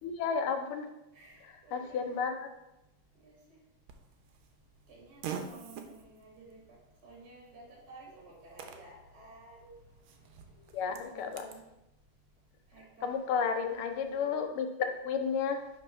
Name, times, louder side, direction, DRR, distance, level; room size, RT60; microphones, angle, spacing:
voice 1, 0.0-0.9 1.7-2.5 10.7-11.5 13.0-15.6, left 6 dB, 85° left, 6 dB, 1.6 m, -32 dB
voice 2, 1.1-2.1 3.2-3.4 4.9-6.6 7.0-9.8 10.9-11.6 12.7-13.2 15.0-15.1, right 2 dB, 50° right, -2 dB, 1.8 m, -53 dB
Fart, 3.9-11.6, right 7 dB, 80° right, 1.5 m, -48 dB
5.3 x 4.2 x 5.5 m, 0.93 s
omnidirectional pair, 2.3 m